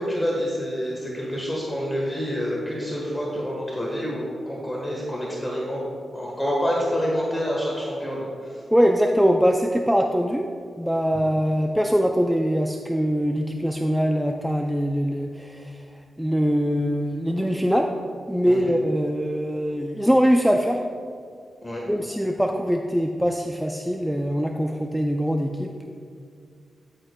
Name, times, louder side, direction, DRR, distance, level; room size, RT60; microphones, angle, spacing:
voice 1, 0.0-5.8 6.1-8.6 18.5-18.7 21.6-21.8, equal, 10° left, -4 dB, 1.3 m, -27 dB
voice 2, 8.7-10.5 10.8-15.8 16.2-17.9 18.3-20.8 21.9-25.7, equal, 5° right, 2 dB, 0.4 m, -22 dB
13.0 x 6.7 x 2.3 m, 2.3 s
wide cardioid pair, 110°, 0 cm